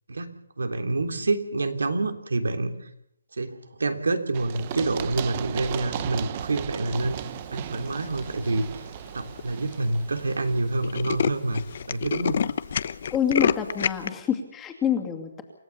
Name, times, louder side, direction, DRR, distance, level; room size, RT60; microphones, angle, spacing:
voice 1, 0.1-2.9 3.3-7.2 7.5-8.9 9.1-12.4, right 2 dB, 90° right, 6 dB, 3.3 m, -27 dB
Run, 4.3-12.0, right 11 dB, 25° right, 0.9 m, -36 dB
Tools, 8.0-8.4 9.1-9.2 9.4-9.5 9.7-9.9 10.2-10.3 10.6-14.1, left 7 dB, 45° left, 0.9 m, -27 dB
voice 2, 13.1-15.4, left 8 dB, 10° left, 5 dB, 2.5 m, -27 dB
28.5 x 15.0 x 7.1 m, 0.74 s
hypercardioid pair, 165°, 0 cm